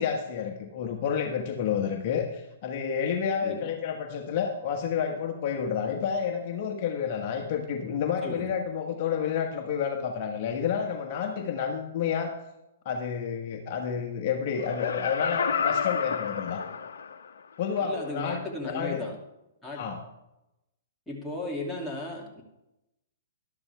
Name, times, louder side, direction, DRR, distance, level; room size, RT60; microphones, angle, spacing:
voice 1, 0.0-12.3 12.8-16.6 17.6-19.0 19.7-20.0, left 7 dB, 45° left, 2 dB, 1.3 m, -30 dB
voice 2, 3.4-3.7 8.2-8.5 17.8-19.1 19.6-19.9 21.1-22.4, left 2 dB, 5° left, -4 dB, 2.6 m, -35 dB
Laughter, 14.6-17.3 17.8-17.9, left 6 dB, 75° left, 0.9 m, -30 dB
12.0 x 12.0 x 3.4 m, 0.90 s
hypercardioid pair, 130°, 0 cm